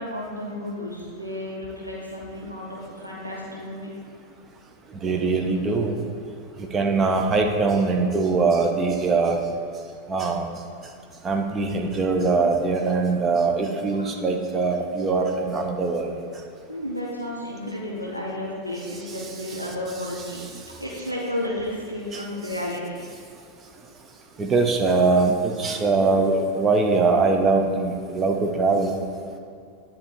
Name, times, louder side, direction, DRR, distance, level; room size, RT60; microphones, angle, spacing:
voice 1, 0.0-3.9 14.0-14.1 16.7-23.1, left 1 dB, 90° right, -4 dB, 0.9 m, -32 dB
voice 2, 5.0-6.0 6.7-9.4 10.1-10.5 11.2-16.1 22.1-22.2 24.4-28.9, right 3 dB, 20° right, 3 dB, 0.8 m, -22 dB
10.0 x 3.7 x 4.5 m, 2.3 s
figure-of-eight pair, 90°, 0 cm